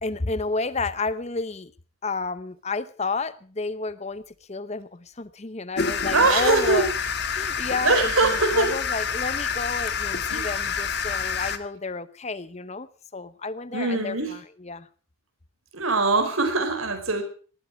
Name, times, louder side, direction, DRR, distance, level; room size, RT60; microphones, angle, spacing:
voice 1, 0.0-1.7 2.0-4.2 4.5-6.9 7.3-14.9, left 3 dB, 30° left, 16 dB, 0.8 m, -31 dB
sound 1, 5.8-11.6, left 6 dB, 50° left, 1.5 m, -28 dB
voice 2, 6.1-6.9 7.8-8.8 10.3-10.5 13.7-14.4 15.7-17.2, right 3 dB, 80° right, 7 dB, 4.6 m, -22 dB
19.0 x 14.5 x 4.7 m, 0.40 s
head